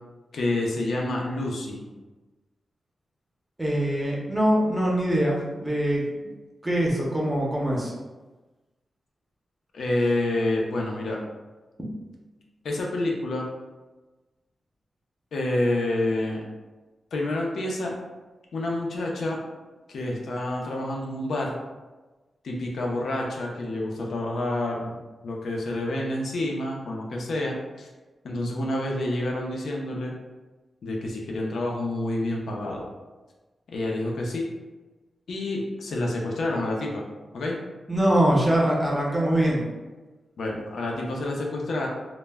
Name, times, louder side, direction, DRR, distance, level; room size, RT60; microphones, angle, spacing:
voice 1, 0.3-1.8 9.7-11.2 12.6-13.5 15.3-16.4 17.1-18.0 18.5-19.4 19.9-21.5 22.4-25.0 25.2-27.9 28.2-30.1 30.8-32.9 33.7-34.5 35.3-37.0 37.3-37.6 40.4-41.9, left 1 dB, 75° left, -1 dB, 0.5 m, -28 dB
voice 2, 3.6-6.0 6.6-7.9 11.8-11.9 37.9-39.7, right 1 dB, 10° right, -4 dB, 0.6 m, -23 dB
2.1 x 2.1 x 3.3 m, 1.2 s
wide cardioid pair, 155°, 0 cm